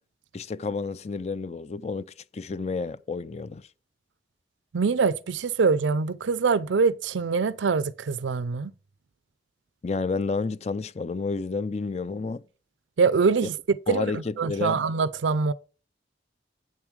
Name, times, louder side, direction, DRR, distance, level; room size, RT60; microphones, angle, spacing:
voice 1, 0.3-3.7 9.8-12.4 13.9-14.8, left 4 dB, 35° left, 0.4 m, -30 dB
voice 2, 4.7-8.7 13.0-15.5, right 5 dB, 85° right, 0.5 m, -24 dB
8.8 x 7.2 x 4.7 m
head